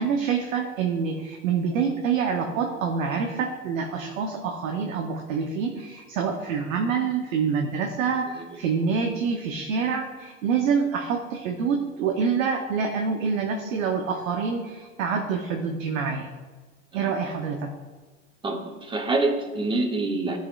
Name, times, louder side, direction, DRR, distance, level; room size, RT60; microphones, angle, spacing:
voice 1, 0.0-16.3 16.9-17.7, right 6 dB, 70° right, 3 dB, 0.9 m, -26 dB
voice 2, 18.4-20.4, right 2 dB, 10° right, 4 dB, 0.8 m, -26 dB
12.5 x 4.5 x 2.4 m, 1.3 s
hypercardioid pair, 110°, 41 cm